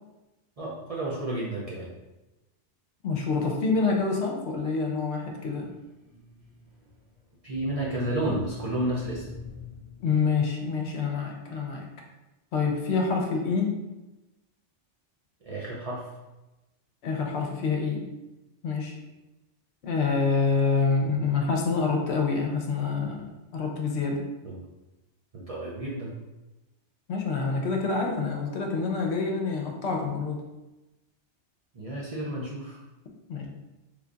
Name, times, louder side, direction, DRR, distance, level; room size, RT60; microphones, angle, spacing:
voice 1, 0.6-1.9 7.4-9.2 15.4-16.1 24.4-24.6 25.3-26.1 31.7-32.8, right 1 dB, 45° right, -6 dB, 0.5 m, -31 dB
voice 2, 3.0-5.7 10.0-11.9 12.5-13.7 17.0-18.1 18.6-19.0 19.8-24.2 27.1-30.4 33.3-33.5, left 4 dB, 70° left, 1 dB, 0.8 m, -27 dB
sound 1, 5.4-10.6, left 3 dB, 65° right, 1.6 m, -45 dB
3.2 x 2.3 x 3.8 m, 1.0 s
omnidirectional pair, 1.2 m